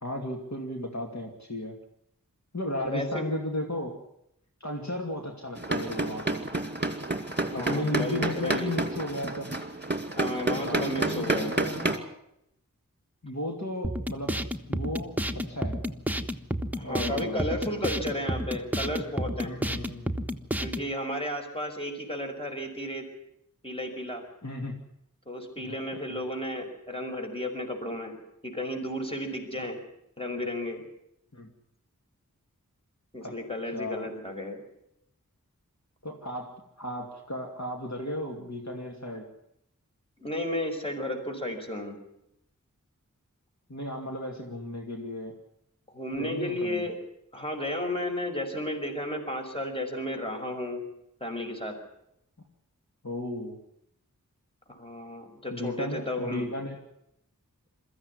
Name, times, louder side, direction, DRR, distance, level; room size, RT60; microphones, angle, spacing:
voice 1, 0.0-1.8 2.5-3.9 4.6-6.4 7.5-9.5 10.5-12.1 13.2-14.4 14.7-15.8 16.8-17.4 19.4-20.1 24.4-24.8 25.7-25.8 29.6-29.7 31.3-31.5 33.2-33.4 33.7-34.1 36.0-39.3 43.7-45.3 46.2-46.8 53.0-53.6 55.5-56.8, left 1 dB, 55° left, 1 dB, 2.7 m, -34 dB
voice 2, 2.8-3.3 7.2-8.8 10.2-11.5 16.7-19.5 20.6-23.1 23.6-24.2 25.3-29.8 30.2-30.8 33.1-34.6 40.2-42.0 45.9-47.0 47.3-50.8 51.2-51.8 54.7-56.5, left 1 dB, 15° left, 2 dB, 5.5 m, -33 dB
sound 1, 5.6-12.0, right 2 dB, 30° right, 2.4 m, -30 dB
sound 2, 13.8-20.9, equal, 5° right, 1.3 m, -31 dB
22.5 x 14.5 x 9.8 m, 0.80 s
wide cardioid pair, 45°, 33 cm